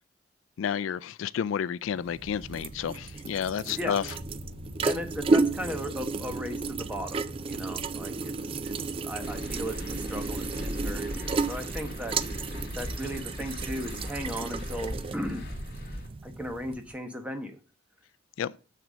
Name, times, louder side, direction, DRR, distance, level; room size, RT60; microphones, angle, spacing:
voice 1, 0.6-4.0 18.4-18.5, left 8 dB, 85° left, 0.3 m, -30 dB
sound 1, 1.9-16.9, right 4 dB, 30° right, 0.3 m, -33 dB
sound 2, 4.1-14.9, left 1 dB, 55° right, 2.9 m, -48 dB
voice 2, 4.8-8.3 8.6-8.7 9.0-15.4 16.2-17.6, equal, 5° right, 1.1 m, -37 dB
sound 3, 9.2-16.1, left 1 dB, 55° left, 2.2 m, -38 dB
6.8 x 6.0 x 6.2 m
head